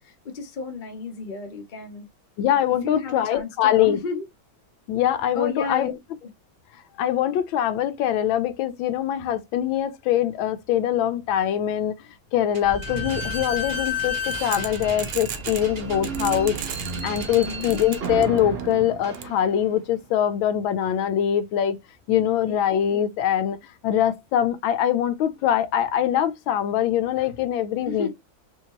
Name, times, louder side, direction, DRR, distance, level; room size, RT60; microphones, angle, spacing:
voice 1, 0.2-2.1 2.8-3.5 3.8-4.2 5.4-5.9 17.3-17.8 27.9-28.1, left 4 dB, 40° left, 0.7 m, -32 dB
voice 2, 2.4-4.0 4.9-5.9 7.0-11.9 12.3-16.6 17.0-21.8 22.1-23.6 23.8-28.1, left 10 dB, 85° left, 1.4 m, -23 dB
Slam / Squeak, 12.5-19.8, equal, 45° right, 0.9 m, -31 dB
sound 1, 14.3-15.7 16.0-18.6 19.1-19.2, right 10 dB, 85° right, 1.4 m, -35 dB
4.3 x 2.7 x 2.9 m
omnidirectional pair, 2.1 m